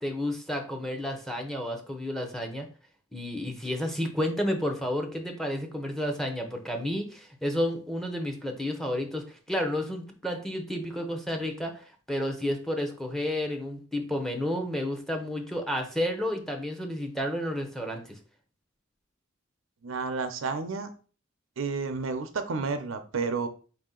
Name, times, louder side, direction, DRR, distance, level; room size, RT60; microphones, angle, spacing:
voice 1, 0.0-2.7 3.1-18.2, left 1 dB, ahead, 3 dB, 0.7 m, -31 dB
voice 2, 19.8-20.9 21.6-23.5, right 4 dB, 90° right, 9 dB, 0.6 m, -31 dB
4.8 x 2.8 x 3.7 m, 0.38 s
head